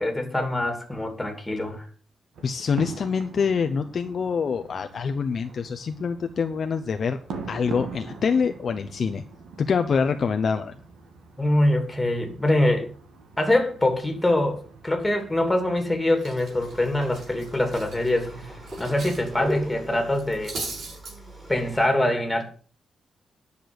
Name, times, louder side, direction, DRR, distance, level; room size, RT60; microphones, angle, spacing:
voice 1, 0.0-1.9 11.4-12.9 13.4-18.3 18.8-20.6 21.5-22.4, left 1 dB, 5° left, 2.8 m, -24 dB
sound 1, 2.3-20.8, right 4 dB, 80° right, 2.2 m, -44 dB
voice 2, 2.4-7.2 7.5-9.2 9.6-10.7, left 6 dB, 40° left, 0.7 m, -25 dB
Cutlery silverware, 15.6-15.8 16.2-19.3 19.5-19.7 20.1-21.1, right 3 dB, 65° right, 6.9 m, -38 dB
sound 2, 16.5-21.9, right 1 dB, 15° right, 5.4 m, -39 dB
10.5 x 6.8 x 7.8 m
wide cardioid pair, 175°, 0 cm